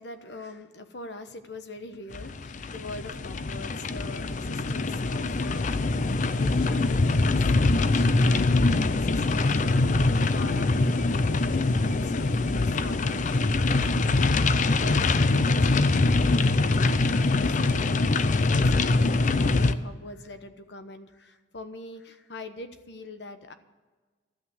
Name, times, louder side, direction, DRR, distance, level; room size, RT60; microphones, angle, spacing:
voice 1, 0.0-9.8 10.3-17.0 17.3-17.9 18.3-23.5, left 2 dB, 70° left, 9 dB, 1.1 m, -43 dB
sound 1, 2.1-19.7, left 3 dB, 45° left, 0.5 m, -23 dB
13.0 x 8.5 x 7.7 m, 1.3 s
head